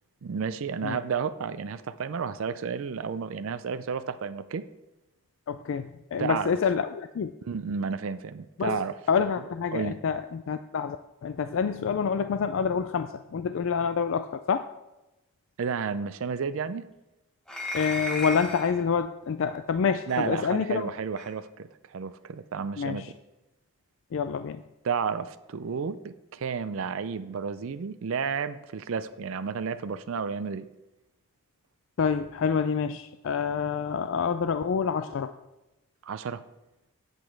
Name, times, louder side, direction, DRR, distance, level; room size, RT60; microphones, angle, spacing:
voice 1, 0.2-4.7 6.2-6.6 7.5-8.9 9.7-10.0 15.6-16.9 20.1-23.2 24.8-30.7 36.0-36.4, right 6 dB, 65° right, 12 dB, 0.4 m, -32 dB
voice 2, 5.5-7.3 8.6-8.8 9.1-11.0 11.2-14.7 17.7-20.9 22.8-23.1 24.1-24.6 32.0-35.3, left 6 dB, 60° left, 11 dB, 0.3 m, -27 dB
Spinning a Bottle, 17.5-18.8 20.1-20.2 21.2-21.3, left 1 dB, 5° left, 1.2 m, -34 dB
8.6 x 8.1 x 4.6 m, 0.98 s
head